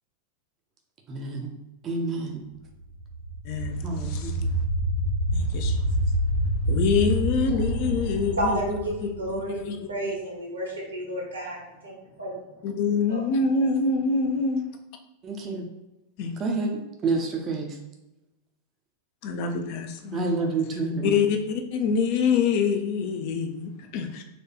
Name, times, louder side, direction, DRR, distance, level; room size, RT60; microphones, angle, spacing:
voice 1, 1.1-1.5 1.8-2.4 3.8-4.5 15.2-15.7 16.4-17.8 20.1-21.2, right 3 dB, 30° right, 0.5 m, -29 dB
sound 1, 2.8-9.7, right 1 dB, 80° left, 0.7 m, -27 dB
voice 2, 3.4-4.4 5.3-5.9 6.7-10.1 12.6-14.6 16.2-16.3 19.2-20.3 21.0-24.2, left 5 dB, 45° left, 0.4 m, -26 dB
voice 3, 8.4-11.6 11.8-12.4 13.1-13.2, right 1 dB, 75° right, 1.2 m, -31 dB
4.1 x 2.3 x 2.9 m
figure-of-eight pair, 90°, 0 cm